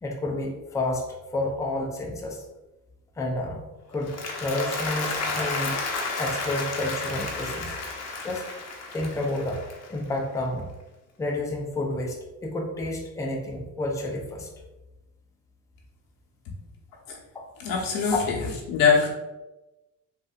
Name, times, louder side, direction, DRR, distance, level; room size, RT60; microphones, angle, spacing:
voice 1, 0.0-2.5 3.2-5.8 6.2-7.7 8.2-8.4 8.9-9.6 9.9-10.7 11.2-14.5 17.3-17.4 18.1-18.2, left 1 dB, 10° left, 0 dB, 0.5 m, -30 dB
Applause, 3.9-10.2, left 3 dB, 50° left, 0.8 m, -32 dB
voice 2, 17.6-18.4 18.7-19.1, left 6 dB, 80° left, -2 dB, 0.9 m, -22 dB
3.7 x 2.6 x 2.4 m, 1.0 s
cardioid pair, 85°, 34 cm